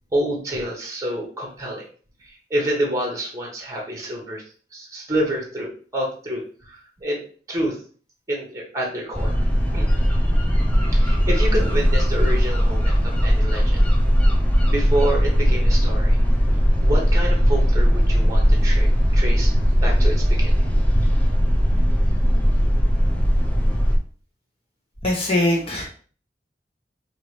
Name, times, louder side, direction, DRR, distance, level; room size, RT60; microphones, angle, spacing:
voice 1, 0.1-1.9 2.2-4.4 4.7-7.2 7.5-7.8 8.3-9.4 9.7-9.9 10.9-13.8 14.7-16.2 16.8-19.5 19.8-20.5 20.9-21.1, right 1 dB, 20° right, 0 dB, 1.1 m, -28 dB
sound 1, 9.1-24.0, equal, 10° left, 0.6 m, -18 dB
voice 2, 25.0-25.9, left 1 dB, 35° left, -3 dB, 1.2 m, -21 dB
4.7 x 2.8 x 3.2 m, 0.42 s
head